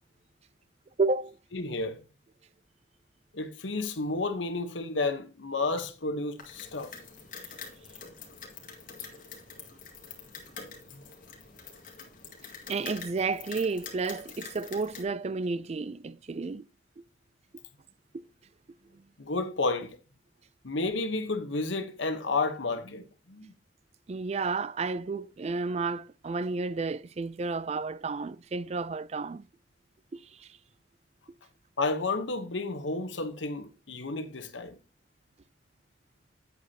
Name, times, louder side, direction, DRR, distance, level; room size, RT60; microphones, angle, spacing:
voice 1, 1.0-1.4 12.7-16.7 24.1-29.5 30.1-30.5, right 4 dB, 35° right, 0.4 m, -31 dB
voice 2, 1.5-2.0 3.3-6.9 10.9-11.0 19.2-20.0 20.6-23.5 31.8-34.8, left 3 dB, 90° left, 1.1 m, -31 dB
sound 1, 6.4-15.0, left 5 dB, 45° left, 2.1 m, -45 dB
9.3 x 8.1 x 2.9 m
head